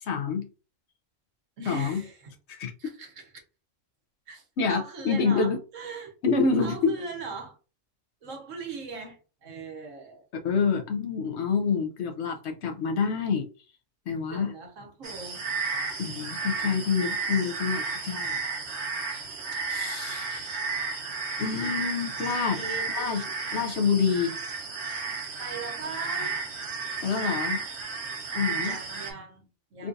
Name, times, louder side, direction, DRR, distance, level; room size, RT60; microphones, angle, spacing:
voice 1, 0.0-0.5 1.7-2.0 2.5-2.7 4.6-5.6 6.2-7.0 10.4-13.5 14.1-14.5 16.0-18.4 19.7-20.5 21.4-22.6 22.9-23.2 23.5-24.4 27.0-27.6 28.3-28.8 29.8-29.9, left 5 dB, 65° left, 0.8 m, -27 dB
voice 2, 1.6-2.3 2.8-3.3 4.3-6.1 6.6-7.6 8.2-10.2 14.3-15.5 16.5-16.8 22.5-22.9 25.4-26.5 28.6-29.9, right 4 dB, 75° right, 1.5 m, -40 dB
sound 1, 15.0-29.1, right 4 dB, 60° right, 1.1 m, -33 dB
3.7 x 2.4 x 2.6 m
omnidirectional pair, 1.3 m